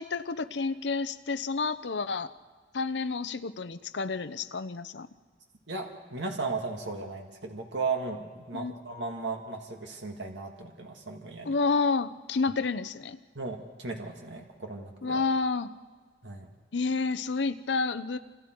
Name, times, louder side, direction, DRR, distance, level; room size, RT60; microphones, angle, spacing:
voice 1, 0.0-2.3 2.7-5.1 8.5-8.8 11.5-13.2 15.0-15.7 16.7-18.2, left 4 dB, 80° left, 12 dB, 0.7 m, -30 dB
voice 2, 5.7-11.6 13.4-15.2 16.2-16.5, right 3 dB, 90° right, 2 dB, 2.0 m, -36 dB
27.5 x 27.0 x 4.6 m, 1.5 s
head